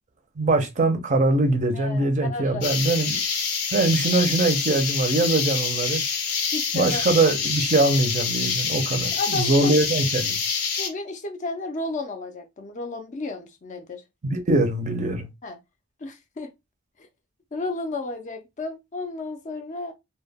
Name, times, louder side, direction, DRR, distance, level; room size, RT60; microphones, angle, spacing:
voice 1, 0.4-3.2 3.7-6.0 6.7-10.4 14.2-15.3, right 2 dB, 35° right, 0.5 m, -22 dB
voice 2, 1.7-2.6 6.5-7.0 9.1-9.7 10.8-14.0 15.4-15.6 16.0-16.5 17.0-17.1 17.5-19.9, left 3 dB, 35° left, 0.4 m, -32 dB
sound 1, 2.6-10.9, left 6 dB, 80° left, 0.7 m, -26 dB
2.1 x 2.1 x 3.3 m
head